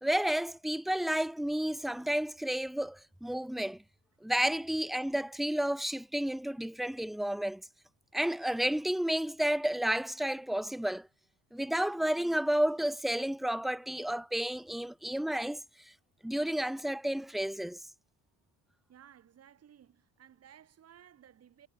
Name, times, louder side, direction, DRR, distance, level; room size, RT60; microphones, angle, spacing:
voice 1, 0.0-3.8 4.2-7.6 8.1-11.1 11.5-15.6 16.2-17.8, right 1 dB, ahead, 0.9 m, -31 dB
voice 2, 18.9-21.7, right 9 dB, 40° right, 6.1 m, -57 dB
cardioid pair, 135°, 38 cm